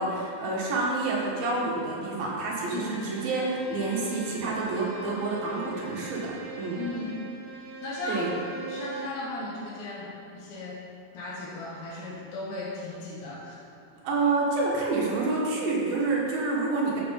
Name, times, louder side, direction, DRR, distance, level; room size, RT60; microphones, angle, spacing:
voice 1, 0.0-6.8 8.1-8.3 14.0-17.0, right 3 dB, 75° right, -4 dB, 3.5 m, -28 dB
Bowed string instrument, 2.4-9.3, right 3 dB, 55° right, 1.1 m, -42 dB
voice 2, 6.8-7.2 7.8-8.3 8.7-10.8 11.1-13.6, left 2 dB, 90° left, -5 dB, 3.5 m, -36 dB
12.5 x 7.5 x 4.3 m, 2.7 s
omnidirectional pair, 4.2 m